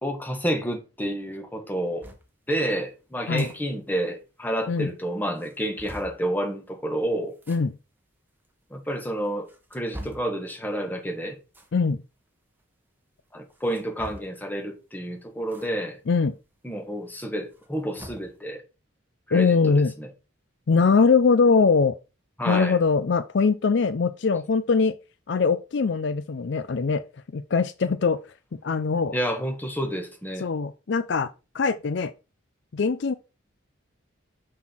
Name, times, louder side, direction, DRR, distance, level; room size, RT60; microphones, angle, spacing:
voice 1, 0.0-2.1 2.5-7.3 8.7-11.4 13.3-16.0 16.6-18.6 19.3-20.1 22.4-22.8 29.1-30.5, right 1 dB, 10° left, 1.3 m, -29 dB
sound 1, 2.0-2.2 3.1-3.5 3.9-4.0 4.2-4.3 4.9-5.0 5.4-6.2 7.3-7.6 8.4-8.5 9.2-10.3 11.5-11.8 13.5-14.5 15.5-15.7 16.0-16.1 17.4-18.4, equal, 10° right, 1.2 m, -43 dB
voice 2, 19.3-19.9 20.7-22.0 22.5-24.9 25.3-27.0 27.3-28.2 28.5-29.2 30.4-31.3 31.5-32.1 32.7-33.1, left 4 dB, 55° left, 0.4 m, -22 dB
6.2 x 5.6 x 4.3 m
head